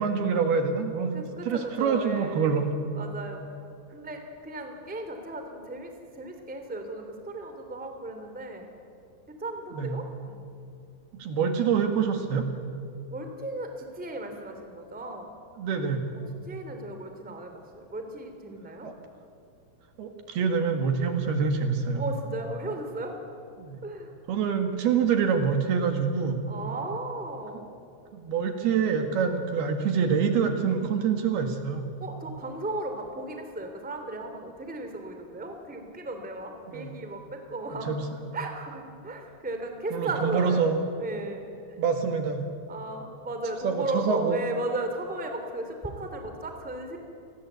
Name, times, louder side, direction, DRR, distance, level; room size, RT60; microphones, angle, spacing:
voice 1, 0.0-1.1 1.5-2.7 9.8-10.0 11.1-12.5 15.6-16.0 18.8-18.9 20.0-22.0 23.6-23.8 24.3-26.4 28.1-31.9 36.7-36.9 37.9-38.3 39.9-40.8 41.8-42.5 43.6-44.4, right 6 dB, 70° right, 6 dB, 3.7 m, -26 dB
voice 2, 1.1-2.7 2.9-3.4 3.9-8.7 9.3-10.4 13.1-15.3 16.1-18.9 22.0-23.2 23.8-24.1 26.5-27.7 32.0-37.9 38.3-40.7 41.0-41.8 42.7-47.0, right 2 dB, 5° right, 5 dB, 2.0 m, -36 dB
29.5 x 21.0 x 8.2 m, 2.6 s
omnidirectional pair, 4.9 m